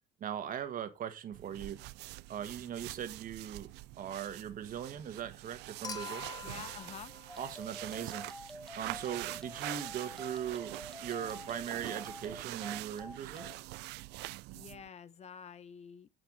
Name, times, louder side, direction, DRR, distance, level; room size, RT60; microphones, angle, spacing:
voice 1, 0.2-1.8 2.3-3.7 4.0-6.3 7.4-8.3 8.7-10.8 11.0-13.5, right 9 dB, 55° right, 1.6 m, -39 dB
sound 1, 1.3-14.9, right 20 dB, 85° right, 0.4 m, -45 dB
Human group actions / Chink clink / Liquid, 5.8-8.2 9.7-9.8, left 5 dB, 20° left, 1.1 m, -46 dB
voice 2, 6.4-7.1 14.5-16.1, left 7 dB, 40° left, 0.7 m, -48 dB
sound 2, 7.3-13.6, left 1 dB, 5° left, 0.8 m, -48 dB
7.9 x 7.0 x 4.0 m
cardioid pair, 110°, 17 cm